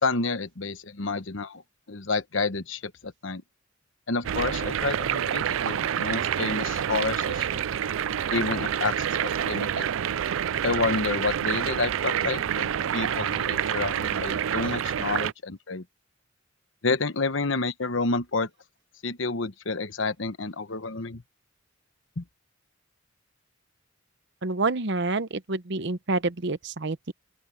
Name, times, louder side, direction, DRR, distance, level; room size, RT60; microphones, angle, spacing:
voice 1, 0.0-1.6 1.9-3.4 4.1-7.6 8.3-9.9 10.6-15.8 16.8-18.5 19.0-21.2 22.2-22.3, left 3 dB, 70° left, 1.1 m, -29 dB
sound 1, 4.2-15.3, right 9 dB, 80° right, 0.4 m, -28 dB
voice 2, 24.4-27.1, right 3 dB, 65° right, 1.0 m, -28 dB
open air
head